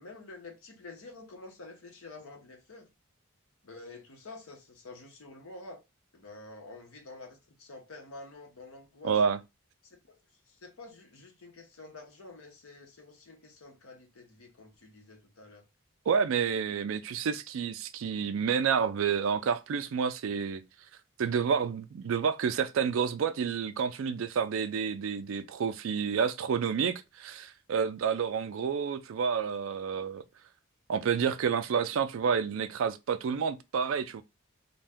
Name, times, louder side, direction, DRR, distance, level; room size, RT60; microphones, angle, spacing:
voice 1, 0.0-2.9 3.6-5.8 6.1-9.2 9.8-10.2 10.5-15.7, left 3 dB, 85° left, 0.8 m, -49 dB
voice 2, 9.0-9.4 16.1-20.6 21.2-30.2 30.9-34.2, right 6 dB, 70° right, 0.3 m, -29 dB
2.6 x 2.2 x 3.4 m
head